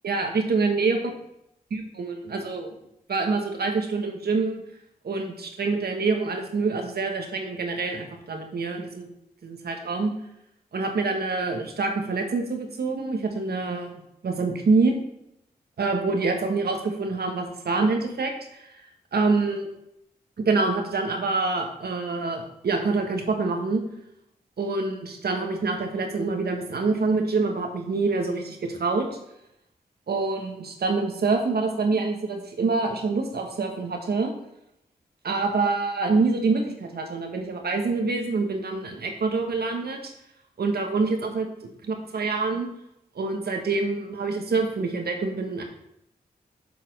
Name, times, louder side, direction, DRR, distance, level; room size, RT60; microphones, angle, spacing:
voice 1, 0.0-1.0 1.7-2.7 3.1-4.6 5.0-9.1 9.4-10.1 10.7-13.9 14.2-15.0 15.8-18.6 19.1-19.7 20.4-23.8 24.6-29.1 30.1-34.3 35.2-40.1 40.6-41.5 41.8-42.7 43.1-45.6, right 3 dB, 75° right, 4 dB, 1.3 m, -26 dB
7.3 x 4.2 x 5.3 m, 0.80 s
cardioid pair, 50°, 17 cm